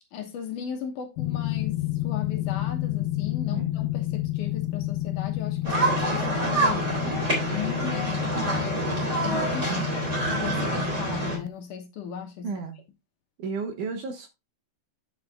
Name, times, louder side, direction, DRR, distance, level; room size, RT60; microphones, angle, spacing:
voice 1, 0.1-7.2 7.5-8.8 9.2-12.5, left 8 dB, 65° left, 2.3 m, -37 dB
sound 1, 1.2-11.5, left 15 dB, 85° left, 2.3 m, -30 dB
voice 2, 3.5-3.8 9.7-10.0 12.4-12.8 13.4-14.3, right 4 dB, 65° right, 2.3 m, -33 dB
sound 2, 5.6-11.4, right 2 dB, 20° right, 3.4 m, -27 dB
9.4 x 7.1 x 2.2 m
omnidirectional pair, 4.3 m